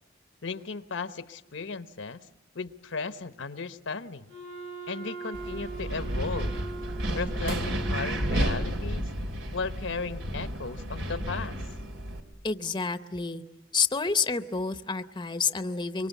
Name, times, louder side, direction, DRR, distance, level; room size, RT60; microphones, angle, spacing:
voice 1, 0.4-2.2 2.5-4.3 4.9-6.6 7.1-9.1 9.5-11.6, left 4 dB, 80° left, 11 dB, 1.0 m, -35 dB
Wind instrument woodwind instrument, 4.3-9.0, right 4 dB, 60° right, 5.8 m, -41 dB
Wind, 5.3-12.2, equal, 90° right, 2.9 m, -31 dB
voice 2, 12.4-13.4 13.7-16.1, left 5 dB, 25° left, 11 dB, 0.8 m, -29 dB
25.0 x 24.0 x 8.2 m, 1.1 s
head